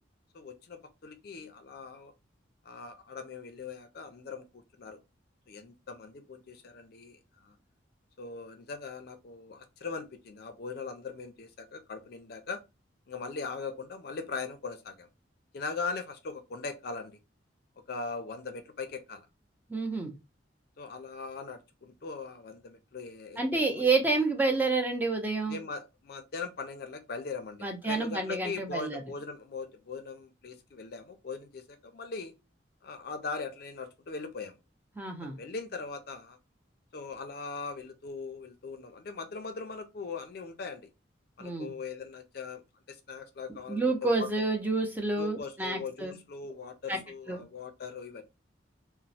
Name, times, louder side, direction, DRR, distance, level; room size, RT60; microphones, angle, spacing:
voice 1, 0.3-2.1 2.6-5.0 5.5-7.6 8.2-12.6 13.1-15.1 15.5-17.2 17.9-19.3 20.8-24.2 25.5-32.3 32.8-34.6 35.2-36.4 36.9-40.9 41.4-42.6 42.9-44.5 45.2-48.2, left 4 dB, 55° left, 0.4 m, -40 dB
voice 2, 19.7-20.1 23.4-25.6 27.6-29.0 35.0-35.4 41.4-41.7 43.7-46.2 46.9-47.0 47.3-47.4, right 3 dB, 10° right, 0.5 m, -29 dB
3.0 x 2.0 x 2.7 m
head